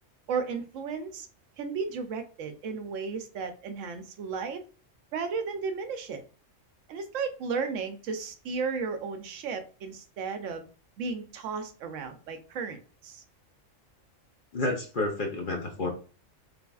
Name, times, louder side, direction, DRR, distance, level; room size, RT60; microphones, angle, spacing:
voice 1, 0.3-1.3 1.6-4.6 5.1-6.2 6.9-10.7 11.0-13.2, right 5 dB, 75° right, 7 dB, 0.9 m, -34 dB
voice 2, 14.5-15.9, left 2 dB, 50° left, 1 dB, 0.7 m, -30 dB
3.4 x 3.3 x 2.3 m, 0.36 s
omnidirectional pair, 1.3 m